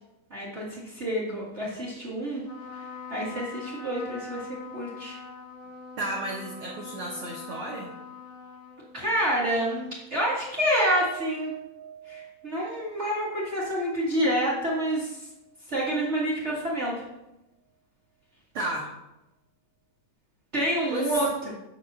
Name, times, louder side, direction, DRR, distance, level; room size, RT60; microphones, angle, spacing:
voice 1, 0.3-2.4 3.1-5.2 8.9-11.5 12.1-15.2 15.7-17.0 20.5-21.5, right 1 dB, 40° right, -6 dB, 0.9 m, -28 dB
Trumpet, 2.4-9.2, left 4 dB, 50° left, 2.3 m, -42 dB
voice 2, 6.0-7.9 18.5-18.9 20.9-21.2, right 1 dB, 75° right, -2 dB, 1.2 m, -32 dB
Piano, 10.6-15.1 15.4-15.6 16.0-16.1, right 11 dB, 60° right, 2.1 m, -42 dB
8.0 x 4.7 x 6.1 m, 0.93 s
omnidirectional pair, 3.9 m